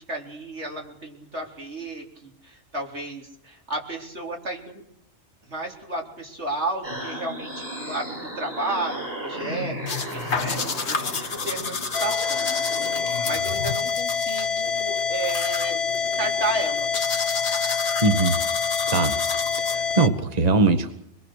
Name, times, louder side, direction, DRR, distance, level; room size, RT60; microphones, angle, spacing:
voice 1, 0.0-4.8 5.4-16.9, right 2 dB, 75° right, 1 dB, 4.4 m, -33 dB
sound 1, 6.8-13.7, equal, 55° right, 7.4 m, -34 dB
sound 2, 9.9-20.1, left 5 dB, 70° left, 1.7 m, -32 dB
sound 3, 11.9-20.1, left 6 dB, 30° left, 1.5 m, -26 dB
voice 2, 18.0-18.4 18.9-19.2 19.6-20.9, right 3 dB, 35° right, 8 dB, 1.5 m, -21 dB
26.0 x 21.5 x 6.5 m, 0.76 s
omnidirectional pair, 1.2 m